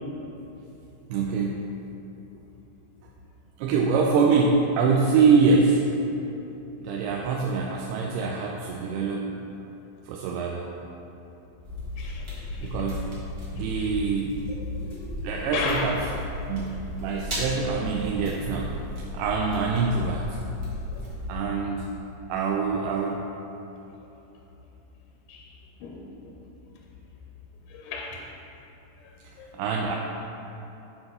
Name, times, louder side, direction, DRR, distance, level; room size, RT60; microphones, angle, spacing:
voice 1, 1.1-1.7 3.6-5.9 6.8-9.4 10.0-10.7 12.6-13.1 13.5-14.5 15.2-16.0 16.5-20.4 21.3-21.9 22.3-23.3 29.2-30.0, right 4 dB, 85° right, -1 dB, 2.6 m, -25 dB
sound 1, 11.6-21.3, left 1 dB, 65° right, 0.9 m, -35 dB
voice 2, 12.0-12.8 13.8-14.0 14.8-15.9 20.9-21.1 25.3-25.5 25.8-26.4 27.7-28.4 29.0-29.1 29.4-29.5, left 4 dB, 80° left, 0 dB, 2.3 m, -35 dB
8.8 x 4.0 x 5.4 m, 3.0 s
omnidirectional pair, 4.6 m